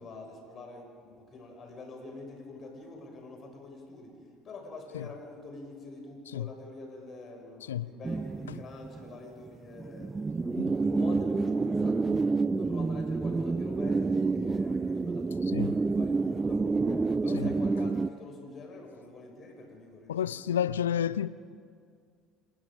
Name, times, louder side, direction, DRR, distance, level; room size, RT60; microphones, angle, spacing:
voice 1, 0.0-4.2 4.4-10.2 10.8-12.2 12.6-16.7 17.2-20.5, left 3 dB, 45° left, 6.5 m, -46 dB
sound 1, 8.0-9.2 9.5-9.6 9.8-18.1, right 3 dB, 20° right, 0.6 m, -28 dB
voice 2, 20.1-21.3, left 10 dB, 80° left, 0.5 m, -31 dB
27.5 x 20.0 x 5.1 m
hypercardioid pair, 60°, 0 cm